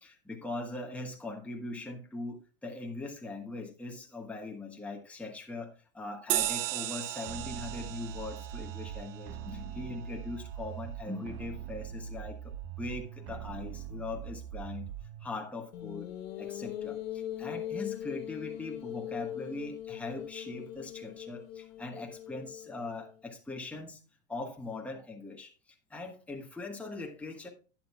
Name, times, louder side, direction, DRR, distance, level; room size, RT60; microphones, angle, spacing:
voice 1, 0.0-14.9 15.2-16.1 16.4-24.0 24.3-27.5, left 3 dB, 5° left, 1.3 m, -41 dB
sound 1, 6.3-11.2, right 15 dB, 70° right, 0.6 m, -37 dB
sound 2, 7.3-15.3, right 9 dB, 50° right, 0.9 m, -42 dB
sound 3, 15.7-23.1, left 11 dB, 85° left, 1.2 m, -40 dB
11.5 x 8.9 x 2.3 m
supercardioid pair, 125°, 39 cm